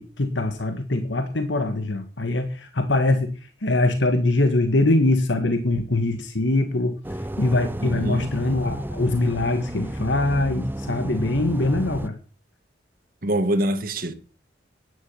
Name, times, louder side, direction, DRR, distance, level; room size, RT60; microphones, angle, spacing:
voice 1, 0.0-12.2, left 2 dB, 85° left, 1.7 m, -23 dB
sound 1, 7.0-12.1, right 1 dB, 10° right, 0.6 m, -32 dB
voice 2, 7.8-8.3 13.2-14.1, right 1 dB, 50° right, 2.1 m, -24 dB
11.5 x 10.5 x 7.2 m
head